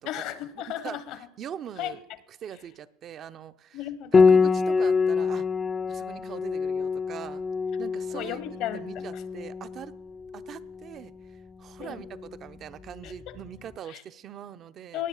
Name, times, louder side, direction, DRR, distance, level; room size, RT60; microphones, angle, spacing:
voice 1, 0.0-1.2 1.8-2.0 3.7-4.3 8.1-9.2 11.8-12.0 13.0-13.4 13.9-14.0 14.9-15.1, left 11 dB, 55° left, 16 dB, 0.9 m, -35 dB
voice 2, 0.8-2.0 2.4-3.8 4.1-5.5 5.9-7.4 7.8-8.4 8.7-9.9 10.3-15.0, right 9 dB, 40° right, 13 dB, 0.6 m, -42 dB
Piano, 4.1-13.5, left 5 dB, 20° left, 0.4 m, -26 dB
18.5 x 7.3 x 7.1 m, 0.90 s
supercardioid pair, 125°, 0 cm